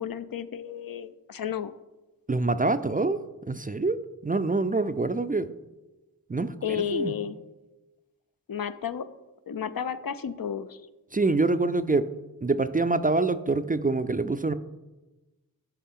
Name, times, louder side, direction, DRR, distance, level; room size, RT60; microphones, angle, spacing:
voice 1, 0.0-1.7 6.6-7.4 8.5-9.1 9.5-10.8, left 7 dB, 65° left, 11 dB, 0.5 m, -32 dB
voice 2, 2.3-3.2 3.5-5.5 6.3-6.5 6.9-7.1 11.1-12.1 12.4-14.5, right 3 dB, 25° right, 11 dB, 0.3 m, -25 dB
11.5 x 5.6 x 3.7 m, 1.1 s
wide cardioid pair, 45°, 37 cm